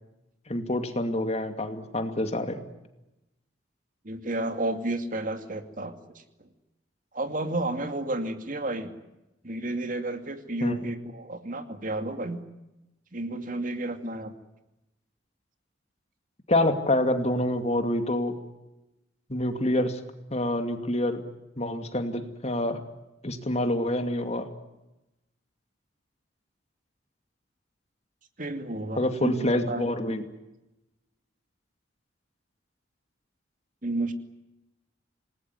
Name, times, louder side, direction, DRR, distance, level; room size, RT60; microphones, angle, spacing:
voice 1, 0.5-2.6 10.6-10.9 16.5-18.4 19.3-20.0 20.3-21.2 21.6-22.8 23.2-24.5 29.0-30.2, left 1 dB, 35° left, 7 dB, 2.5 m, -27 dB
voice 2, 4.0-6.2 7.1-8.9 9.4-12.4 13.1-14.3 28.4-30.1 33.8-34.1, right 2 dB, 45° right, 7 dB, 2.5 m, -32 dB
28.0 x 20.0 x 9.4 m, 0.96 s
head